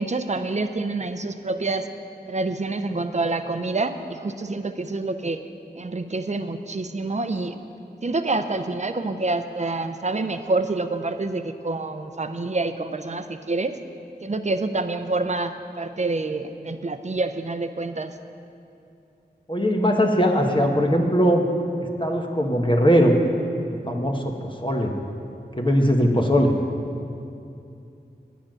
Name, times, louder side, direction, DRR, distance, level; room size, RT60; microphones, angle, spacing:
voice 1, 0.0-1.9 2.3-5.4 5.8-7.6 8.0-13.8 14.2-18.1, right 3 dB, 40° right, 8 dB, 0.6 m, -27 dB
voice 2, 19.5-21.4 21.8-23.2 23.7-24.9 25.5-26.5, equal, 25° left, 2 dB, 1.2 m, -20 dB
9.9 x 9.1 x 6.3 m, 2.6 s
wide cardioid pair, 45°, 18 cm